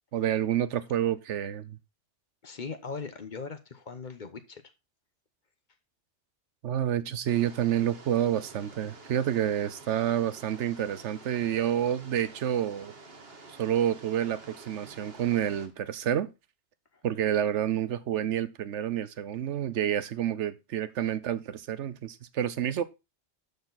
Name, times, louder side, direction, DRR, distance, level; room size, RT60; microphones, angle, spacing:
voice 1, 0.1-1.8 6.6-12.9 13.5-16.3 17.0-22.8, right 10 dB, 90° right, 1.1 m, -29 dB
voice 2, 2.4-4.6 9.9-10.0 16.9-17.0 21.0-21.1, left 5 dB, 45° left, 1.0 m, -40 dB
sound 1, 7.2-15.7, right 3 dB, 60° right, 1.6 m, -49 dB
12.0 x 4.5 x 3.9 m
omnidirectional pair, 1.2 m